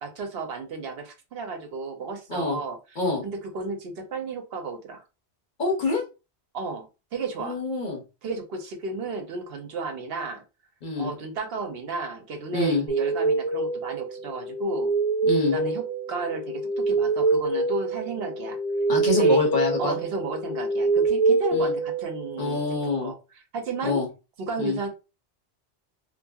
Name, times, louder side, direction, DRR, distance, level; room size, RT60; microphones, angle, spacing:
voice 1, 0.0-2.8 3.2-5.0 6.5-6.9 7.1-7.6 8.2-10.4 11.0-14.9 15.5-18.6 19.1-19.5 19.8-22.6 23.0-23.1 23.5-24.0 24.4-24.9, right 4 dB, 65° right, 5 dB, 0.8 m, -33 dB
voice 2, 5.6-6.0 7.4-8.0 10.8-11.1 12.5-12.8 15.2-15.6 18.9-20.0 21.5-21.7 22.4-23.1 23.8-24.1 24.6-24.8, left 3 dB, 50° left, 0 dB, 0.9 m, -26 dB
sound 1, 12.9-22.6, right 3 dB, 15° left, 0.7 m, -25 dB
2.7 x 2.7 x 2.2 m, 0.29 s
omnidirectional pair, 1.1 m